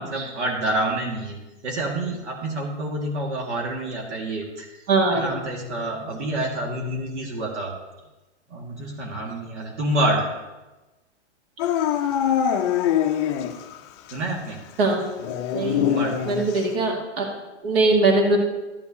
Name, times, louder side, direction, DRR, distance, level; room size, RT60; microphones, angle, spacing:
voice 1, 0.0-1.4 1.6-4.7 5.1-7.7 8.5-10.2 14.1-14.6 15.6-16.2, right 1 dB, 75° right, -1 dB, 1.9 m, -28 dB
voice 2, 4.9-5.2 14.8-15.0 15.5-15.9 16.3-17.2 17.6-18.4, right 3 dB, 55° right, 0 dB, 2.1 m, -21 dB
Dog / Siren, 11.6-13.8 14.1-14.2 15.2-16.7, left 9 dB, 25° left, 0.5 m, -23 dB
13.0 x 7.2 x 2.7 m, 1.1 s
hypercardioid pair, 145°, 35 cm